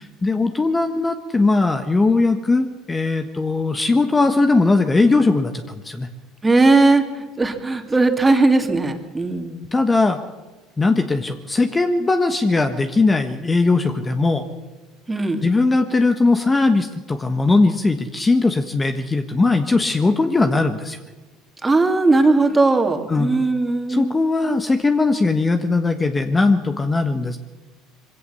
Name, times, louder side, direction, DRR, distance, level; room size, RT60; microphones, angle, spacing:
voice 1, 0.0-6.1 9.7-10.2 10.8-14.4 15.4-21.0 23.1-23.3 23.9-27.4, left 3 dB, 20° left, 7 dB, 1.4 m, -19 dB
voice 2, 6.4-9.6 15.1-15.5 21.6-24.1, right 3 dB, 15° right, 5 dB, 2.6 m, -18 dB
23.0 x 16.5 x 7.1 m, 1.2 s
supercardioid pair, 85°, 0 cm